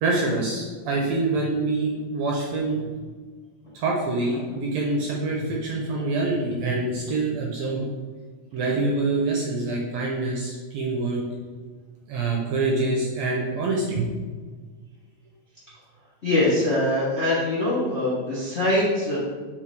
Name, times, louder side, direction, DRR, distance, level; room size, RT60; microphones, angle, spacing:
voice 1, 0.0-2.9 3.7-7.9 8.5-11.2 12.1-14.1, right 2 dB, 75° right, -2 dB, 1.7 m, -25 dB
voice 2, 16.2-19.2, left 1 dB, 35° left, -8 dB, 1.0 m, -23 dB
7.0 x 4.9 x 3.4 m, 1.4 s
omnidirectional pair, 3.7 m